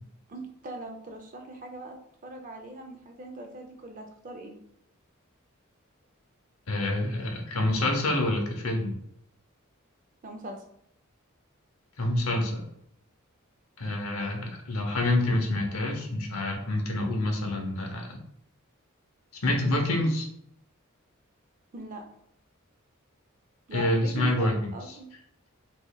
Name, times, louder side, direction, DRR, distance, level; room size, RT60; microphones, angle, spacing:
voice 1, 0.3-4.5 10.2-10.6 21.7-22.0 23.7-25.1, right 2 dB, 40° right, 3 dB, 0.5 m, -40 dB
voice 2, 6.7-9.0 12.0-12.7 13.8-18.2 19.4-20.3 23.7-25.0, left 1 dB, 90° left, 2 dB, 0.8 m, -27 dB
3.8 x 3.0 x 2.3 m, 0.72 s
head